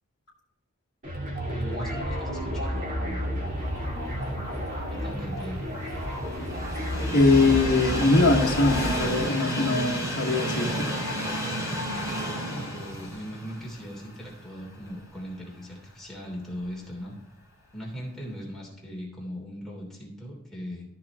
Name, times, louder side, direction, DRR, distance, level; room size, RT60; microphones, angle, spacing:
sound 1, 1.0-9.3, equal, 40° right, 2.3 m, -31 dB
voice 1, 1.5-3.3 4.9-5.6 12.5-17.1 17.7-20.8, equal, ahead, -4 dB, 3.1 m, -39 dB
Train, 4.8-15.0 15.4-15.5 16.6-16.7, equal, 15° right, 2.7 m, -32 dB
voice 2, 7.1-10.8, left 3 dB, 50° left, -5 dB, 1.4 m, -22 dB
14.0 x 5.9 x 3.6 m, 0.89 s
head